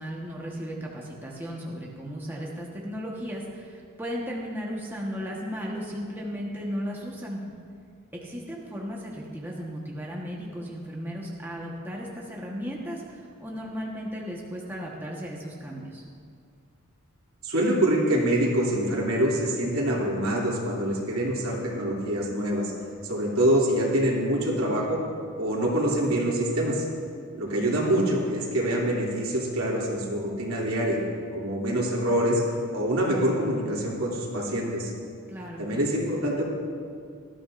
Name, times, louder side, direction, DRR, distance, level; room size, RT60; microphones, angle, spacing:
voice 1, 0.0-7.4 8.1-16.0 27.7-28.1 35.3-35.7, equal, 10° right, -3 dB, 1.2 m, -35 dB
voice 2, 17.4-22.7 23.1-25.0 25.4-26.8 27.4-31.0 31.3-32.4 32.7-34.9 35.6-36.4, right 1 dB, 80° right, -4 dB, 2.8 m, -25 dB
18.5 x 13.0 x 2.6 m, 2.2 s
head